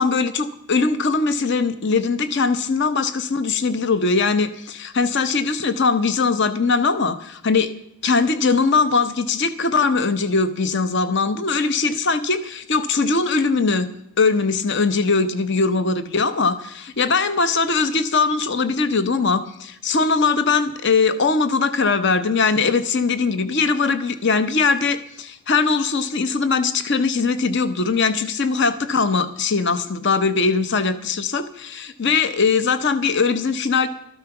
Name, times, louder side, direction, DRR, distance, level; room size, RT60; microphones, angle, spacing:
voice 1, 0.0-7.7 8.0-13.9 14.2-33.9, left 4 dB, 55° left, 12 dB, 0.8 m, -20 dB
13.5 x 12.0 x 5.9 m, 0.76 s
head